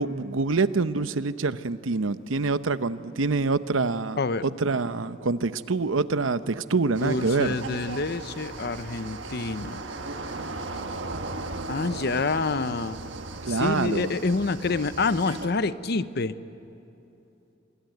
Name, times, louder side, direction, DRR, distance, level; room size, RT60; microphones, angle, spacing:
voice 1, 0.0-7.6 13.4-14.1, right 3 dB, 90° right, 13 dB, 0.8 m, -26 dB
sound 1, 6.9-15.5, right 3 dB, 70° right, 1.5 m, -37 dB
voice 2, 7.0-9.8 11.7-13.0 13.5-16.3, left 3 dB, 55° left, 13 dB, 0.8 m, -27 dB
27.0 x 21.0 x 9.3 m, 2.9 s
head